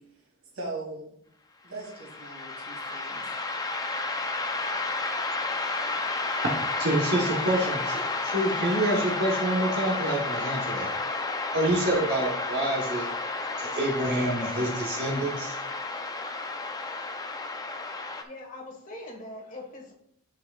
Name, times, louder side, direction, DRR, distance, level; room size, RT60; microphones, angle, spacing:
voice 1, 0.5-1.1 1.6-3.2, right 2 dB, 65° right, -1 dB, 2.4 m, -39 dB
sound 1, 1.8-18.2, left 3 dB, 15° left, 0.4 m, -31 dB
voice 2, 6.8-10.9 11.5-13.1 13.6-15.6, right 1 dB, 50° right, -2 dB, 1.1 m, -27 dB
voice 3, 18.2-19.9, left 1 dB, 35° left, 1 dB, 1.3 m, -42 dB
8.3 x 6.0 x 2.3 m, 0.73 s
head